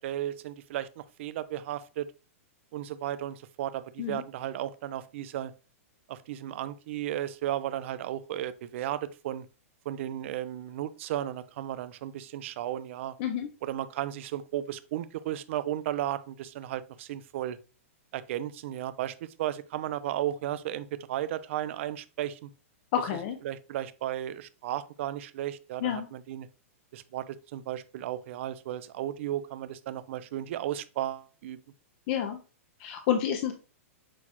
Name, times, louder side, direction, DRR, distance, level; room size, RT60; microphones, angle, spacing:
voice 1, 0.0-2.1 2.7-5.5 6.1-9.5 9.9-13.2 13.6-17.6 18.1-22.5 23.4-26.5 26.9-31.6, right 12 dB, 55° right, 0.4 m, -34 dB
voice 2, 22.9-23.4 25.8-26.1 32.1-32.4 32.8-33.5, left 9 dB, 45° left, 0.5 m, -29 dB
6.1 x 2.3 x 2.9 m
hypercardioid pair, 140°, 8 cm